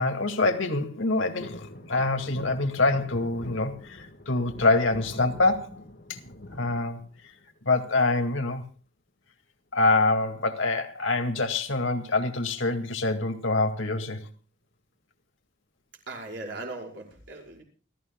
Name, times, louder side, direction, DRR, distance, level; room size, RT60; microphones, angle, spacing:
voice 1, 0.0-5.8 6.1-6.2 6.5-7.3 7.6-8.6 9.7-14.2, left 2 dB, 70° left, 5 dB, 2.3 m, -25 dB
sound 1, 1.4-7.6 8.0-8.6 9.9-10.3 10.6-10.7 10.9-11.2 12.1-13.0 13.5-13.6, left 1 dB, 55° left, 1.9 m, -45 dB
voice 2, 16.1-17.6, right 2 dB, 55° right, 1 dB, 5.3 m, -38 dB
29.5 x 14.5 x 2.3 m, 0.38 s
head